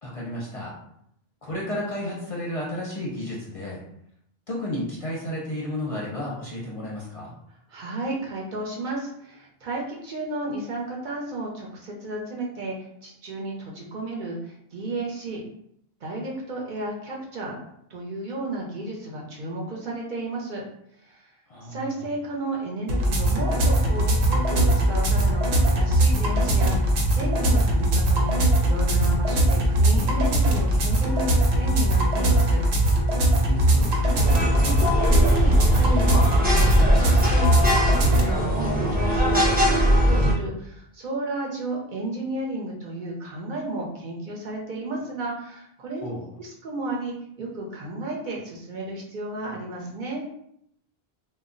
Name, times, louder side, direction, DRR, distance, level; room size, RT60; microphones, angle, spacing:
voice 1, 0.0-0.7 1.4-3.8 4.5-7.3 21.5-22.1 33.4-34.3 46.0-46.3, left 1 dB, 45° left, -5 dB, 0.5 m, -32 dB
voice 2, 7.7-12.8 13.0-15.4 16.0-17.5 17.9-20.6 21.0-21.3 21.6-32.6 34.6-46.1 46.4-50.3, right 2 dB, 55° right, -2 dB, 0.7 m, -33 dB
sound 1, 22.9-38.2, right 1 dB, 85° right, 0.9 m, -21 dB
Cairo Traffic, 34.1-40.3, equal, 10° right, 0.5 m, -21 dB
2.2 x 2.0 x 3.7 m, 0.72 s
omnidirectional pair, 1.1 m